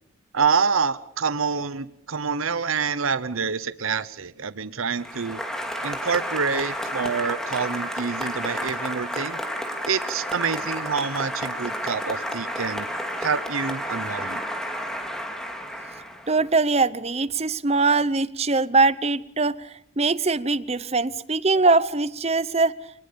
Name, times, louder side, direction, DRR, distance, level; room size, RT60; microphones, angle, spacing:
voice 1, 0.3-5.4 5.8-9.4 9.9-12.9 13.2-14.4, right 5 dB, 90° right, 0.9 m, -27 dB
Applause, 5.0-16.5, equal, 5° left, 2.9 m, -31 dB
voice 2, 16.3-19.5 20.0-22.7, right 3 dB, 30° right, 0.8 m, -22 dB
28.5 x 19.5 x 6.9 m
head